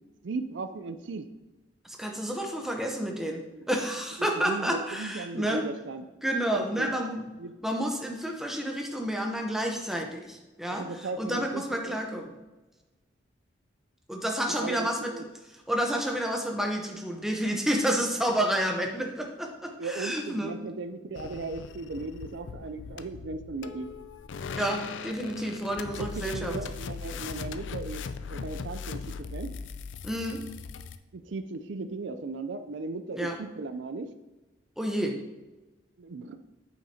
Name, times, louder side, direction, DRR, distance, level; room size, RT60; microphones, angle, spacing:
voice 1, 0.2-1.3 3.5-3.6 4.2-6.0 6.6-7.0 7.4-7.5 10.7-12.0 14.5-15.2 19.8-23.9 26.0-28.0 28.3-29.5 31.1-34.1 36.0-36.4, right 3 dB, 70° right, 9 dB, 0.5 m, -37 dB
voice 2, 1.8-3.4 3.7-5.6 6.2-7.3 7.6-12.3 14.1-15.1 15.7-20.5 24.6-26.6 30.0-30.4 33.1-33.4 34.8-35.2, equal, ahead, 1 dB, 0.8 m, -30 dB
sound 1, 21.2-31.0, left 5 dB, 75° left, 0.4 m, -39 dB
8.8 x 6.4 x 2.8 m, 1.1 s
head